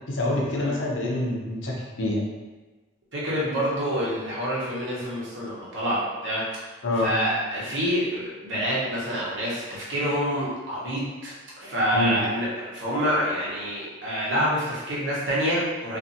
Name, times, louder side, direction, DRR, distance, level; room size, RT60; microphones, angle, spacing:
voice 1, 0.1-2.2 6.8-7.1 11.9-12.2, left 1 dB, 85° left, -3 dB, 0.6 m, -26 dB
voice 2, 3.1-6.4 7.0-16.0, equal, 75° right, -6 dB, 0.9 m, -27 dB
2.6 x 2.5 x 2.5 m, 1.2 s
head